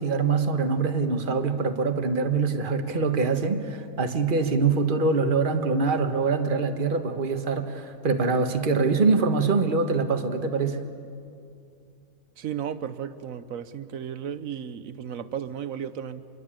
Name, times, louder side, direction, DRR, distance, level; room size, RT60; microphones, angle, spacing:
voice 1, 0.0-10.8, right 4 dB, 30° right, 7 dB, 1.4 m, -24 dB
voice 2, 12.4-16.3, right 8 dB, 55° right, 13 dB, 1.2 m, -34 dB
26.0 x 22.5 x 8.9 m, 2.5 s
omnidirectional pair, 1.8 m